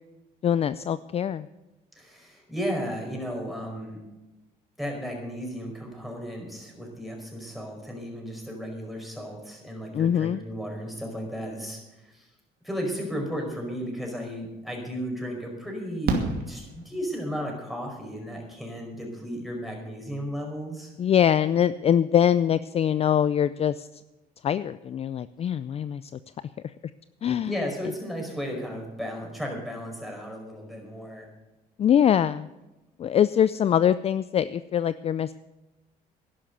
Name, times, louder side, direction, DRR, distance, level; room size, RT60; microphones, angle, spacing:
voice 1, 0.4-1.5 9.9-10.4 21.0-23.9 24.4-26.1 27.2-27.6 31.8-32.5 33.0-35.3, left 9 dB, 35° left, 15 dB, 0.4 m, -23 dB
voice 2, 1.9-4.0 4.8-12.3 12.6-20.9 27.4-31.3, equal, ahead, 1 dB, 5.0 m, -34 dB
Fireworks, 14.4-14.5 16.0-17.4 19.1-19.2 19.4-19.5, right 4 dB, 65° right, 2.5 m, -29 dB
11.5 x 11.5 x 6.8 m, 1.0 s
cardioid pair, 110°, 17 cm